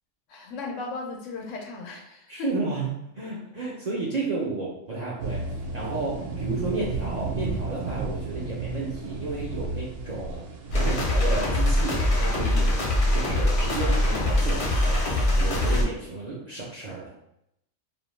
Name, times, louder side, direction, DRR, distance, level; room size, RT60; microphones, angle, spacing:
voice 1, 0.3-2.6, left 4 dB, 90° left, 1 dB, 0.9 m, -36 dB
voice 2, 2.3-5.4 5.7-10.4 10.7-12.7 13.1-15.0 15.3-17.1, right 3 dB, 60° right, -6 dB, 0.4 m, -32 dB
sound 1, 5.2-15.6, right 3 dB, 85° right, 0.9 m, -35 dB
sound 2, 10.7-15.8, left 1 dB, 45° left, 0.4 m, -23 dB
2.5 x 2.1 x 3.0 m, 0.80 s
omnidirectional pair, 1.3 m